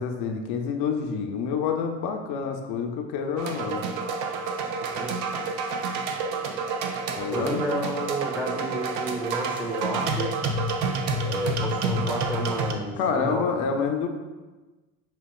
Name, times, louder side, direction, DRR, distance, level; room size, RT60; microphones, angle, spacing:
voice 1, 0.0-3.9 7.2-7.6 13.0-14.1, left 6 dB, 65° left, 3 dB, 0.6 m, -28 dB
sound 1, 3.4-12.7, right 3 dB, 65° right, 0.6 m, -29 dB
voice 2, 7.3-10.4 11.2-13.6, right 1 dB, 5° right, 0 dB, 0.6 m, -31 dB
5.2 x 2.8 x 2.2 m, 1.2 s
hypercardioid pair, 65°, 44 cm